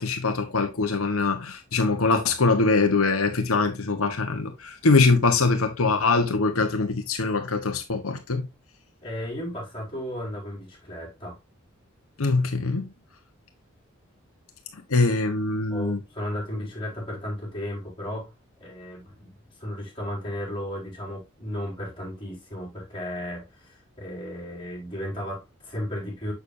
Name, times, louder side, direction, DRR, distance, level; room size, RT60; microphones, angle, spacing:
voice 1, 0.0-8.5 12.2-12.9 14.9-16.0, left 3 dB, 90° left, 1.0 m, -23 dB
voice 2, 9.0-11.4 15.7-18.3 18.6-19.3 19.6-26.3, equal, 25° left, 4.3 m, -34 dB
7.0 x 6.6 x 2.7 m
head